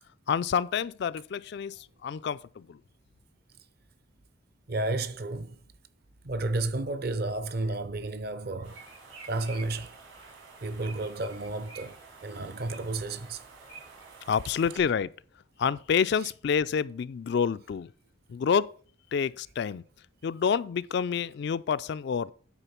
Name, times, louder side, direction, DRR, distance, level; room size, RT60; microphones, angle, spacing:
voice 1, 0.3-2.8 14.3-15.1 15.6-17.9 18.3-18.7 19.1-19.8 20.2-22.3, left 6 dB, 55° left, 0.3 m, -28 dB
voice 2, 4.7-5.6 6.2-8.8 9.2-10.0 10.6-13.4, right 2 dB, 50° right, 0.6 m, -32 dB
sound 1, 8.6-14.8, right 4 dB, 75° right, 3.8 m, -49 dB
9.9 x 4.2 x 5.8 m
head